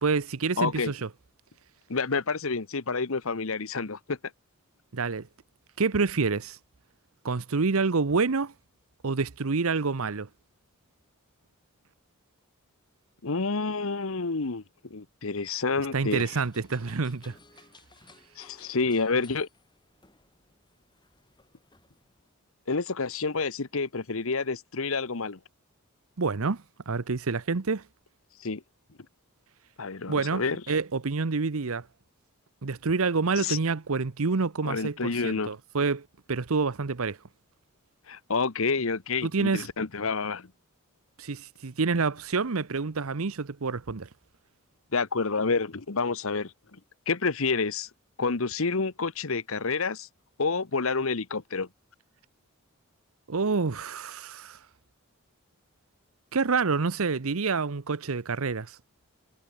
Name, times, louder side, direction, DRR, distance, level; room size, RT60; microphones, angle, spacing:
voice 1, 0.0-1.1 4.9-5.3 5.8-6.6 7.2-8.5 9.0-10.3 15.9-17.4 26.2-27.8 30.1-31.9 32.6-37.2 39.2-39.7 41.2-44.1 53.3-54.6 56.3-58.8, right 4 dB, 70° right, 0.8 m, -28 dB
voice 2, 0.6-0.9 1.9-4.2 13.2-14.6 14.9-16.2 18.4-19.5 22.7-25.4 28.4-28.6 29.8-30.6 33.4-33.6 34.6-35.5 38.1-40.5 44.9-46.5 47.1-47.9 48.2-50.1 50.4-51.7, left 4 dB, 65° left, 1.1 m, -28 dB
sound 1, 16.1-22.3, left 3 dB, 20° left, 3.9 m, -57 dB
head